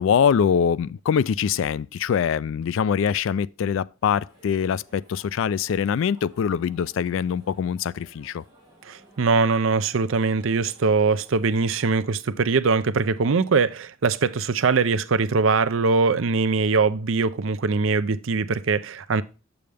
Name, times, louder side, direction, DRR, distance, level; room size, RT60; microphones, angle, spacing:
voice 1, 0.0-8.4, left 7 dB, 65° left, 0.3 m, -23 dB
sound 1, 4.0-12.1, right 1 dB, 20° right, 5.0 m, -55 dB
voice 2, 8.8-19.2, right 4 dB, 70° right, 0.5 m, -22 dB
7.6 x 6.9 x 3.4 m
head